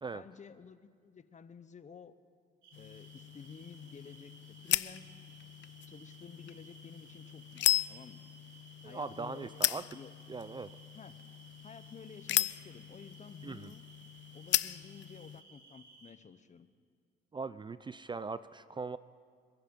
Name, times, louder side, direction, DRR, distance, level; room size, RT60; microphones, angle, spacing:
voice 1, 0.1-2.1 2.8-5.1 5.9-8.3 8.8-10.1 10.9-11.1 11.6-13.9 14.3-16.7, left 6 dB, 35° left, 13 dB, 0.8 m, -52 dB
sound 1, 2.6-16.1, right 3 dB, 80° right, 2.8 m, -58 dB
sound 2, 2.7-15.4, left 13 dB, 65° left, 0.5 m, -37 dB
voice 2, 8.8-9.8 10.3-10.7 13.4-13.7 17.3-19.0, right 4 dB, 25° right, 15 dB, 0.4 m, -40 dB
26.5 x 10.0 x 5.3 m, 2.1 s
cardioid pair, 90°, 20 cm